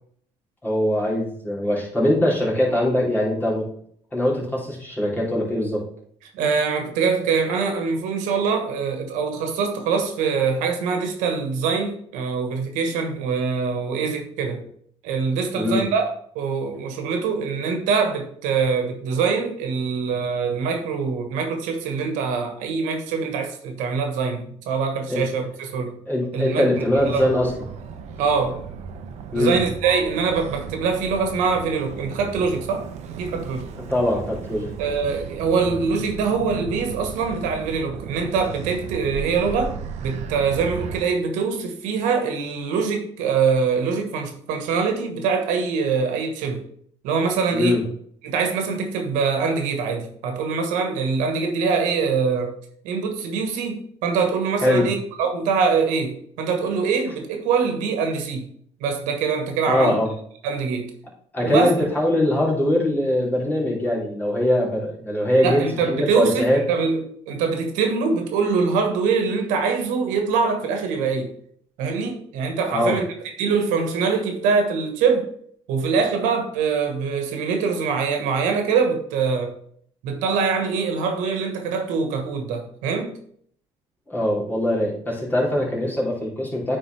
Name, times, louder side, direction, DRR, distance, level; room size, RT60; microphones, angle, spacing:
voice 1, 0.6-3.7 4.1-5.8 15.5-15.8 25.1-25.2 26.0-27.5 29.3-29.6 33.9-34.7 35.7-35.8 47.5-47.8 54.6-54.9 59.6-60.1 61.3-66.6 72.7-73.0 84.1-86.8, left 1 dB, 15° left, -5 dB, 3.2 m, -22 dB
voice 2, 6.3-14.6 15.0-25.9 26.3-27.3 28.2-28.6 29.3-32.9 33.2-33.7 34.8-46.6 47.0-47.8 48.2-52.5 52.8-58.5 58.8-60.0 60.4-60.9 61.4-61.7 65.4-71.3 71.8-73.1 73.4-75.3 75.7-79.5 80.0-83.2, right 5 dB, 85° right, 5 dB, 1.3 m, -24 dB
Motor vehicle (road), 27.0-41.0, right 6 dB, 65° right, 0.8 m, -35 dB
9.4 x 4.2 x 3.4 m, 0.63 s
cardioid pair, 110°, 13 cm